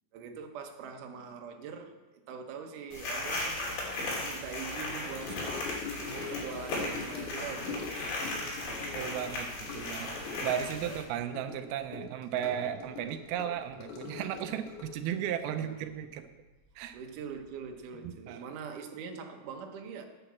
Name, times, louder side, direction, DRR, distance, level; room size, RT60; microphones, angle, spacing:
voice 1, 0.1-1.9 2.3-3.6 3.9-7.9 10.1-11.0 15.5-15.8 16.9-20.1, right 6 dB, 65° right, 3 dB, 2.5 m, -43 dB
sound 1, 2.9-11.0, left 2 dB, 90° left, 4.9 m, -36 dB
Gurgling / Sink (filling or washing) / Trickle dribble, 5.2-16.9 17.1-17.5 17.7-17.8, left 5 dB, 60° left, 2.9 m, -43 dB
voice 2, 8.6-9.5 9.7-10.1 10.4-16.2 16.8-17.0 18.0-18.5, right 10 dB, 90° right, 8 dB, 2.6 m, -35 dB
9.9 x 8.5 x 7.2 m, 1.2 s
omnidirectional pair, 4.2 m